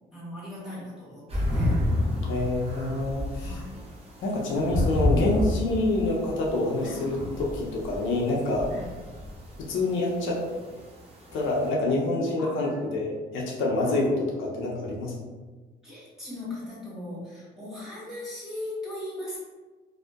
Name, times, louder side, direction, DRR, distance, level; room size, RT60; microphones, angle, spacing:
voice 1, 0.1-1.8 3.4-3.9 6.8-7.0 8.7-8.9 12.4-12.8 13.8-14.0 15.8-19.4, left 1 dB, ahead, -8 dB, 1.4 m, -39 dB
sound 1, 1.3-11.7, left 1 dB, 30° right, 0.7 m, -30 dB
voice 2, 2.2-3.6 4.2-8.7 9.7-10.4 11.3-15.1, left 2 dB, 80° left, -3 dB, 0.5 m, -27 dB
2.6 x 2.1 x 2.3 m, 1.3 s
cardioid pair, 90°, 20 cm